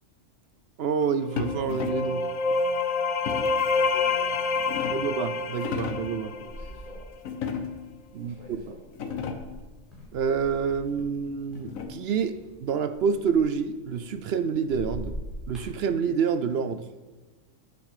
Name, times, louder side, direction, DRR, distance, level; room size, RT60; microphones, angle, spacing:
voice 1, 0.8-2.2 4.9-6.3 8.1-8.4 8.7-8.8 10.1-15.1 15.5-16.9, right 6 dB, 60° right, 12 dB, 0.7 m, -27 dB
sound 1, 1.3-7.0, left 4 dB, 70° left, 0.3 m, -27 dB
sound 2, 1.4-2.2 3.3-3.7 4.3-5.2 5.5-6.2 7.2-8.0 8.5-8.6 8.9-9.6 11.0-12.2, left 6 dB, 90° left, 1.4 m, -35 dB
voice 2, 3.7-4.4 4.6-5.1 5.4-5.8 6.1-7.1 8.2-8.8, equal, 35° right, -4 dB, 2.4 m, -47 dB
sound 3, 4.2-4.3 4.8-5.1 6.0-11.2 11.5-14.3 14.6-15.8, equal, ahead, 4.0 m, -43 dB
9.4 x 7.1 x 6.6 m, 1.2 s
omnidirectional pair, 1.4 m